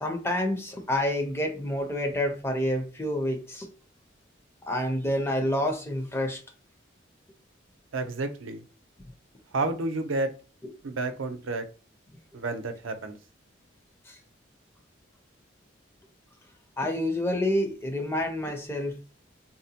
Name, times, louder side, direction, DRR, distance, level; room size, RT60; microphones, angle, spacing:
voice 1, 0.0-3.7 4.7-6.4 14.1-14.2 16.8-19.0, left 1 dB, 10° left, 0.5 m, -28 dB
voice 2, 7.9-8.6 9.5-10.3 10.8-11.6 12.3-13.2, right 2 dB, 85° right, 0.6 m, -30 dB
3.8 x 2.1 x 2.7 m
head